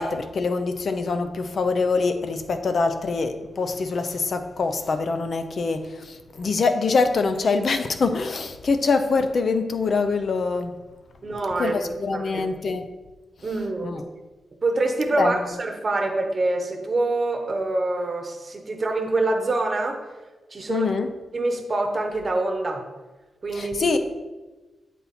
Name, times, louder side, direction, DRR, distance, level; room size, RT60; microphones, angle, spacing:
voice 1, 0.0-10.7 11.6-12.8 13.8-14.0 15.2-15.5 20.7-21.1 23.5-24.0, left 4 dB, 50° left, 8 dB, 0.5 m, -24 dB
voice 2, 11.2-11.8 12.1-12.5 13.4-14.0 14.6-20.0 20.5-20.9 21.3-22.8 23.4-24.0, right 2 dB, 35° right, 3 dB, 0.9 m, -25 dB
7.3 x 4.1 x 4.2 m, 1.2 s
wide cardioid pair, 145°, 0 cm